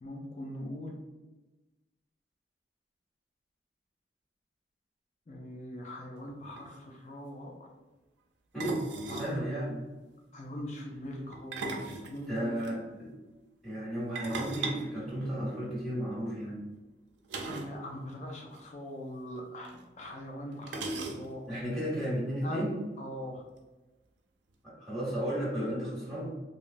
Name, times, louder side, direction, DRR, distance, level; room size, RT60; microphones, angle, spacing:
voice 1, 0.0-1.0 5.3-7.7 9.1-9.3 10.3-12.7 17.5-21.4 22.4-22.6 23.0-23.4, equal, 40° left, 0 dB, 0.4 m, -41 dB
sound 1, 6.3-6.4 6.6-6.8 8.6-9.4 11.3-12.7 14.2-15.8 17.3-17.8 18.1-18.2 18.5-18.6 19.6-19.7 20.7-21.5, right 3 dB, 85° right, 0.4 m, -38 dB
voice 2, 9.1-9.8 12.2-13.1 13.6-16.6 21.5-22.8 24.6-26.4, equal, ahead, -9 dB, 1.2 m, -34 dB
3.1 x 2.3 x 2.5 m, 1.1 s
head